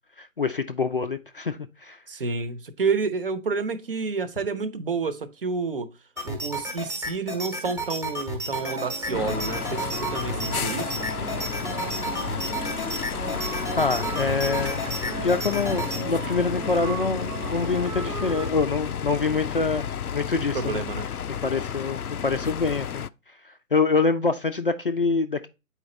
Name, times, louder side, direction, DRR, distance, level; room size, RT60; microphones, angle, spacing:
voice 1, 0.2-2.0 13.7-14.9 15.2-20.8 21.4-23.0 23.4-25.5, left 4 dB, 40° left, 0.5 m, -25 dB
voice 2, 2.1-5.9 6.2-11.0 20.5-21.1, right 4 dB, 40° right, 0.9 m, -29 dB
sound 1, 6.2-16.0, right 1 dB, 5° right, 0.9 m, -33 dB
sound 2, 8.5-18.5, right 8 dB, 75° right, 0.6 m, -37 dB
sound 3, 9.1-23.1, left 8 dB, 90° left, 0.6 m, -32 dB
8.7 x 4.5 x 3.9 m
figure-of-eight pair, 145°, 43 cm